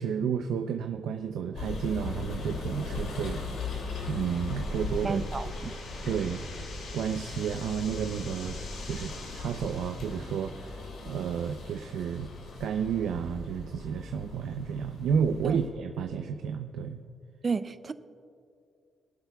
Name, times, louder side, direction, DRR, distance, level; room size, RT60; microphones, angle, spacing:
voice 1, 0.0-3.4 4.1-5.2 6.1-6.4 6.9-10.7 11.1-12.3 12.6-17.0, right 7 dB, 80° right, 6 dB, 0.5 m, -31 dB
sound 1, 1.5-15.7, left 3 dB, 85° left, 2.7 m, -39 dB
sound 2, 3.7-10.7, left 4 dB, 70° left, 2.2 m, -47 dB
voice 2, 5.0-5.7 15.4-15.6 17.4-17.9, right 4 dB, 25° right, 12 dB, 0.4 m, -31 dB
23.5 x 11.5 x 2.3 m, 2.4 s
cardioid pair, 175°, 0 cm